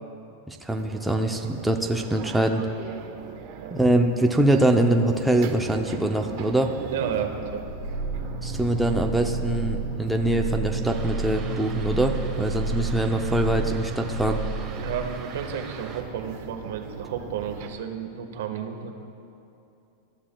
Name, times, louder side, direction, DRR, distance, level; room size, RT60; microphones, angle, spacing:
voice 1, 0.5-2.6 3.7-6.7 8.4-14.4, right 1 dB, 5° right, 2 dB, 0.5 m, -23 dB
sound 1, 0.8-17.7, right 7 dB, 45° right, 1.0 m, -41 dB
voice 2, 3.5-3.9 6.9-7.6 14.8-18.9, right 8 dB, 80° right, 4 dB, 1.3 m, -32 dB
sound 2, 7.6-15.3, right 3 dB, 75° left, 2.8 m, -30 dB
Fixed-wing aircraft airplane, 10.8-16.0, right 5 dB, 25° right, 1.2 m, -42 dB
26.0 x 13.0 x 2.3 m, 2.8 s
supercardioid pair, 160°, 0 cm